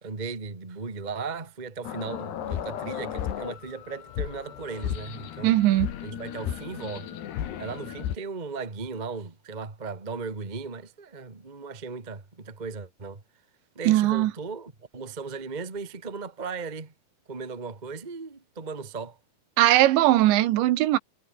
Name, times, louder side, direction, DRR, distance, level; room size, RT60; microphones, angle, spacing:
voice 1, 0.0-5.5 6.0-7.2 7.6-13.2 13.7-16.9 17.3-19.2, right 4 dB, 25° right, 0.9 m, -37 dB
sound 1, 1.8-8.2, left 10 dB, 70° left, 4.2 m, -34 dB
voice 2, 5.4-5.9 13.9-14.3 19.6-21.0, right 15 dB, 85° right, 3.5 m, -20 dB
omnidirectional pair, 5.1 m